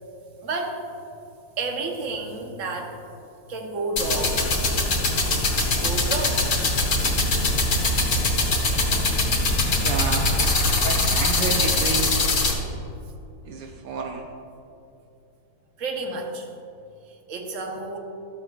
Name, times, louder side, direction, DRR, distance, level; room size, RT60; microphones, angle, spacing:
voice 1, 0.4-0.8 1.6-2.9 3.5-4.8 5.2-5.4 5.7-6.5 6.9-7.0 9.3-9.4 12.7-12.9 15.8-16.5 17.3-18.0, right 3 dB, 55° right, 2 dB, 1.3 m, -31 dB
sound 1, 4.0-12.5, left 2 dB, 75° left, 2.0 m, -22 dB
voice 2, 9.8-10.4 10.8-12.2 13.4-14.3, right 5 dB, 80° right, 3 dB, 1.2 m, -30 dB
13.5 x 8.2 x 2.4 m, 2.8 s
omnidirectional pair, 1.8 m